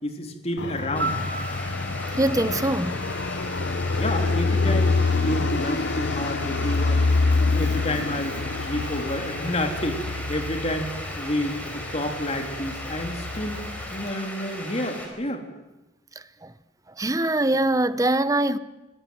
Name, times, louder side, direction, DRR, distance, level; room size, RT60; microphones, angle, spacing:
voice 1, 0.0-1.2 3.9-7.1 7.4-13.7 13.9-15.5, left 1 dB, 35° left, 3.4 m, -30 dB
Fixed-wing aircraft airplane, 0.6-14.1, left 3 dB, 75° left, 0.9 m, -26 dB
sound 1, 0.9-15.1, left 1 dB, 10° left, 5.3 m, -37 dB
Piano, 1.0-3.9 12.1-12.3, right 2 dB, 70° right, 3.1 m, -36 dB
voice 2, 2.2-3.1 16.1-16.5 17.0-18.6, right 1 dB, 20° right, 0.9 m, -23 dB
25.5 x 18.0 x 9.3 m
head